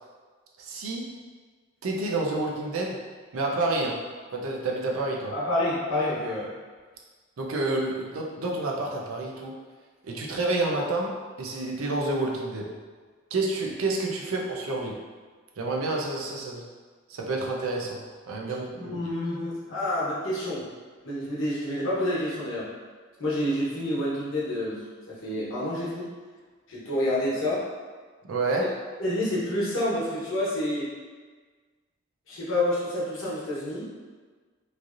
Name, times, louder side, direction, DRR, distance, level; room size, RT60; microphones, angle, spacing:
voice 1, 0.6-1.2 1.8-3.0 3.3-4.0 4.3-5.3 7.4-9.6 10.1-12.8 13.3-15.0 15.6-16.6 17.1-18.0 18.3-18.9 28.3-28.7, right 2 dB, 90° right, -1 dB, 0.5 m, -29 dB
voice 2, 5.3-6.5 18.7-20.6 21.0-22.7 23.2-26.1 26.7-27.7 29.0-30.9 32.3-33.9, left 1 dB, 75° left, -7 dB, 1.0 m, -28 dB
3.2 x 2.5 x 2.5 m, 1.5 s
head